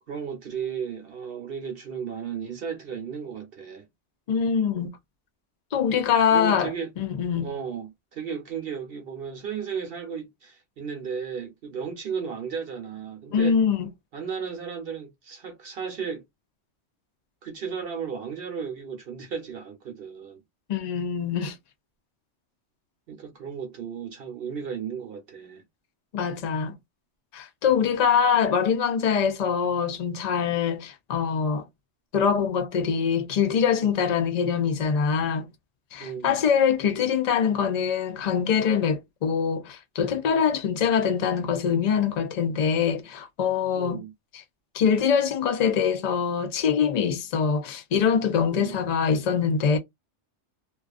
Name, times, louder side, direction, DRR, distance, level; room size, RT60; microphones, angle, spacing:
voice 1, 0.1-3.9 6.3-6.9 7.4-13.6 14.1-16.2 17.4-20.4 23.1-25.6 36.0-36.4 43.8-44.1 48.5-48.8, right 6 dB, 55° right, 0.8 m, -34 dB
voice 2, 4.3-4.9 5.7-7.5 13.3-13.9 20.7-21.6 26.1-26.7 27.3-31.7 32.1-35.5 35.9-44.0 44.3-44.4 44.7-49.8, left 7 dB, 90° left, 0.3 m, -24 dB
2.4 x 2.3 x 2.4 m
omnidirectional pair, 1.3 m